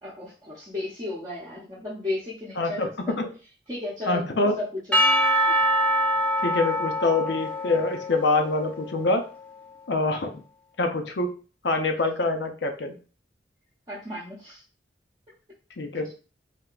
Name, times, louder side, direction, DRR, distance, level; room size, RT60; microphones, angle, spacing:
voice 1, 0.0-3.2 3.7-5.0 5.5-5.6 13.9-14.6, left 2 dB, 25° right, -8 dB, 0.8 m, -34 dB
voice 2, 2.6-2.9 3.2-3.3 4.1-4.5 6.4-9.2 9.9-10.4 10.8-11.3 11.6-13.0 15.8-16.1, left 3 dB, 70° left, 5 dB, 0.6 m, -25 dB
Percussion / Church bell, 4.9-9.3, equal, 5° left, 0.5 m, -24 dB
3.5 x 2.8 x 2.4 m, 0.36 s
head